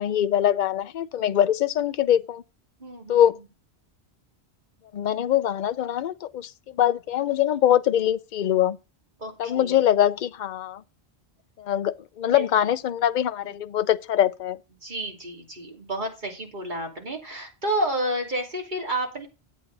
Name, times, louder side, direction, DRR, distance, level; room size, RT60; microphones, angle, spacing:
voice 1, 0.0-2.4 3.1-3.4 4.9-8.8 9.4-10.8 11.6-14.6, left 11 dB, 55° left, 0.7 m, -23 dB
voice 2, 2.8-3.2 9.2-9.8 12.2-12.5 14.8-19.3, right 1 dB, 45° right, 3.0 m, -30 dB
10.0 x 8.3 x 4.0 m
omnidirectional pair, 1.1 m